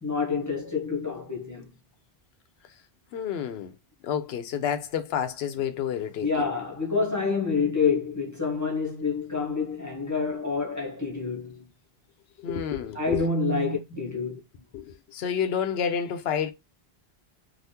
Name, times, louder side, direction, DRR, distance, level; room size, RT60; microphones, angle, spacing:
voice 1, 0.0-1.7 6.2-11.7 12.9-14.4, left 4 dB, 15° left, 1.1 m, -27 dB
voice 2, 3.1-3.7 4.0-6.5 12.4-13.2 14.7-16.5, left 8 dB, 75° left, 0.8 m, -29 dB
3.5 x 2.4 x 2.8 m
omnidirectional pair, 1.1 m